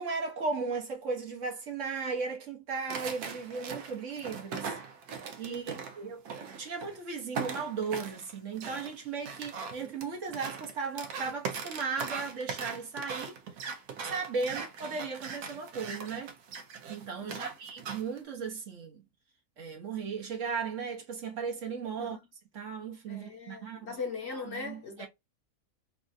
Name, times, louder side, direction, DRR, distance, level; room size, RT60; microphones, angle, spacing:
voice 1, 0.0-4.8 5.4-13.4 14.0-16.3 16.9-19.0 19.6-22.2 22.5-24.0 24.3-25.1, right 5 dB, 60° right, 1.1 m, -36 dB
sound 1, 2.9-7.0 7.3-18.2, right 5 dB, 85° right, 1.2 m, -40 dB
voice 2, 5.4-5.8 9.8-9.9 17.2-17.5 22.0-22.2 23.1-25.1, left 4 dB, 50° left, 1.0 m, -40 dB
3.2 x 2.4 x 2.5 m
omnidirectional pair, 1.6 m